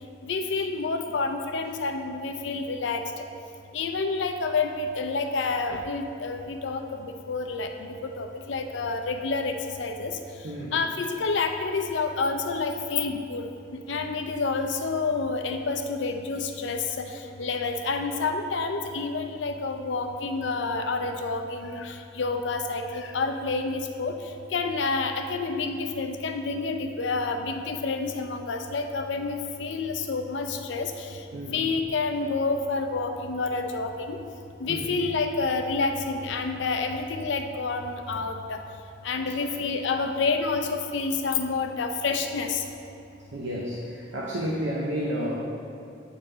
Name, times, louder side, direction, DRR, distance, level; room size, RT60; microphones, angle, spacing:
voice 1, 0.2-3.2 3.7-10.2 10.7-13.5 13.7-24.2 24.5-31.2 31.5-34.2 34.6-38.6 39.0-42.6, left 4 dB, 85° left, 6 dB, 0.5 m, -29 dB
voice 2, 10.4-10.8 31.3-31.6 34.7-34.8 39.4-39.5 43.3-45.4, equal, 80° right, -3 dB, 0.7 m, -31 dB
8.7 x 3.8 x 3.9 m, 2.7 s
head